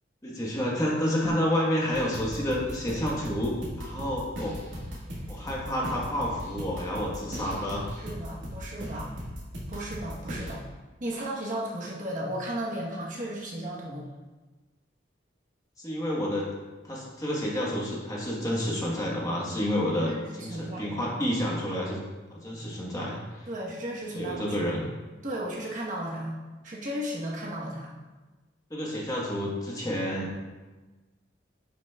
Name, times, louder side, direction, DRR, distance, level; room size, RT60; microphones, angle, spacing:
voice 1, 0.2-4.6 5.3-7.9 10.4-10.5 15.8-16.5 16.8-22.0 22.3-23.5 24.1-24.8 28.7-30.3, equal, 20° left, -4 dB, 1.2 m, -29 dB
sound 1, 1.9-10.5, equal, 85° right, 1.8 m, -38 dB
voice 2, 8.0-9.1 9.7-10.6 11.0-14.1 20.1-20.9 23.5-24.6 25.2-26.3 26.6-27.9, right 1 dB, 45° right, -4 dB, 1.1 m, -35 dB
10.0 x 5.9 x 2.3 m, 1.2 s
head